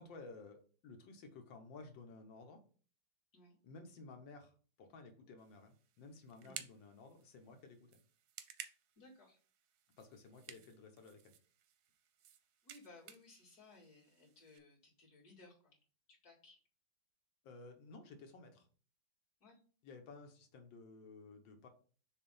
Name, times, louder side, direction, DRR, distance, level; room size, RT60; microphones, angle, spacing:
voice 1, 0.0-2.6 3.6-7.9 10.0-11.3 17.4-18.7 19.8-21.7, left 3 dB, 75° left, 5 dB, 1.7 m, -55 dB
sound 1, 5.4-14.6, right 9 dB, 70° right, 1.0 m, -56 dB
voice 2, 9.0-9.4 10.5-10.6 12.6-15.8 16.1-16.6 19.4-19.6, left 2 dB, 50° left, -5 dB, 2.8 m, -61 dB
6.6 x 2.6 x 5.4 m, 0.41 s
omnidirectional pair, 2.1 m